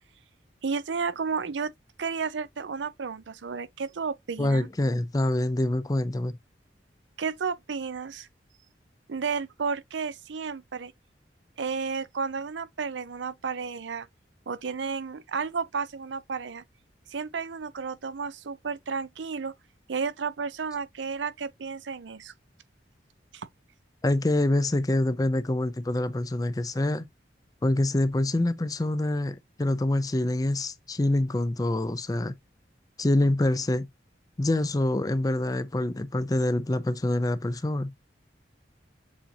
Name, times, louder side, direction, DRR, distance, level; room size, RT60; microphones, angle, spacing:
voice 1, 0.6-1.7 2.0-4.7 7.2-8.3 9.1-10.9 11.6-14.1 14.5-16.6 17.1-19.5 19.9-22.3 23.3-23.5, right 5 dB, 85° right, 0.6 m, -32 dB
voice 2, 4.4-6.4 24.0-27.1 27.6-32.3 33.0-33.9 34.4-37.9, left 1 dB, 20° left, 0.5 m, -26 dB
7.3 x 2.7 x 2.7 m
head